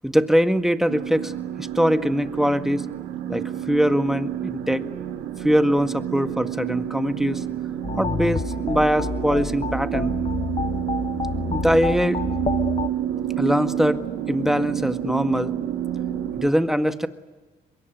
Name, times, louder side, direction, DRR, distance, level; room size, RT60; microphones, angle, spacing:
voice 1, 0.0-1.3 1.6-2.9 3.3-4.8 5.4-7.4 7.9-10.1 11.5-12.4 13.4-14.0 14.3-15.5 16.4-17.1, equal, ahead, 9 dB, 1.8 m, -22 dB
sound 1, 0.9-16.5, right 10 dB, 85° right, 1.9 m, -29 dB
sound 2, 7.8-12.9, left 5 dB, 30° left, 1.0 m, -29 dB
24.5 x 22.0 x 9.4 m, 1.2 s
supercardioid pair, 60°, 19 cm